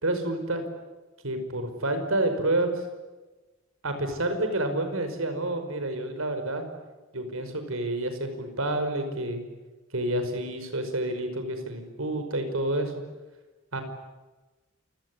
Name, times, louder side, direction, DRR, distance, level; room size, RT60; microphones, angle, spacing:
voice 1, 0.0-0.6 1.2-2.8 3.8-6.6 7.1-9.4 9.9-12.9 13.7-13.8, right 1 dB, 85° right, 7 dB, 5.2 m, -29 dB
29.0 x 18.0 x 9.9 m, 1.2 s
head